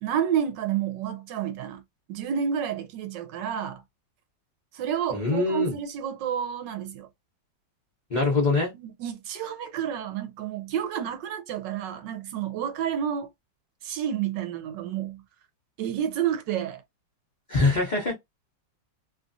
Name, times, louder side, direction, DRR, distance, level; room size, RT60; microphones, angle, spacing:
voice 1, 0.0-1.8 2.1-3.8 4.7-7.1 8.7-13.3 13.8-15.2 15.8-16.8, right 9 dB, 75° right, 1.3 m, -30 dB
voice 2, 5.1-5.7 8.1-8.7 17.5-18.1, left 3 dB, 65° left, 0.4 m, -23 dB
3.1 x 2.4 x 2.5 m
omnidirectional pair, 2.1 m